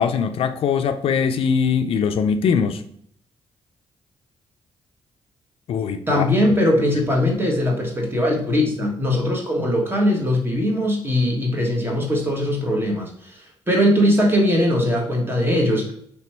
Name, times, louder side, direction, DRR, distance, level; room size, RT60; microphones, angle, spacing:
voice 1, 0.0-2.8 5.7-6.2, left 6 dB, 70° left, 0.4 m, -21 dB
voice 2, 6.1-15.9, left 1 dB, 20° right, 1.5 m, -20 dB
3.4 x 3.0 x 4.4 m
cardioid pair, 65°, 10 cm